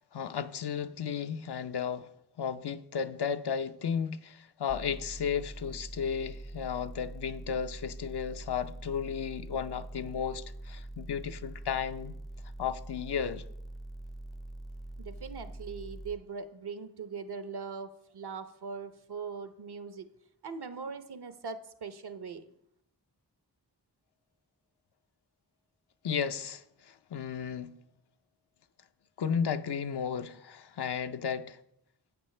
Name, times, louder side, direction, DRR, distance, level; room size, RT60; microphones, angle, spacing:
voice 1, 0.1-2.1 2.4-12.1 12.6-13.4 26.0-27.7 29.2-31.6, left 7 dB, 75° left, 0.6 m, -34 dB
sound 1, 4.7-16.1, right 1 dB, ahead, 0.4 m, -44 dB
voice 2, 15.0-20.1 20.4-22.4, right 5 dB, 70° right, 0.9 m, -41 dB
11.5 x 8.4 x 3.3 m
cardioid pair, 40°, 40 cm